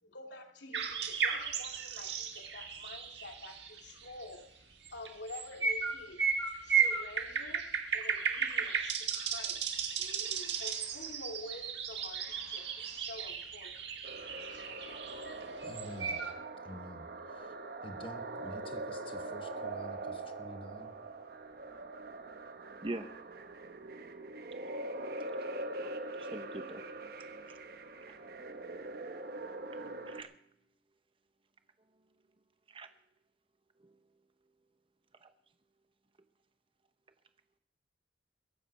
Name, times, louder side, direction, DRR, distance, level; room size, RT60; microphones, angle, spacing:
voice 1, 0.0-6.2 6.6-13.8 14.4-15.6, left 2 dB, 85° left, 3 dB, 2.4 m, -49 dB
sound 1, 0.7-4.2 4.8-16.3, right 6 dB, 75° right, 1.6 m, -35 dB
sound 2, 14.0-30.2, right 2 dB, 60° right, 1.0 m, -43 dB
voice 2, 15.6-16.2 16.6-17.5 17.8-20.9 22.9-23.0, left 1 dB, 30° left, 7 dB, 1.2 m, -48 dB
voice 3, 25.7-26.8 29.8-30.3 32.7-32.9, right 2 dB, 30° right, 9 dB, 0.8 m, -42 dB
22.0 x 8.7 x 5.4 m, 0.72 s
head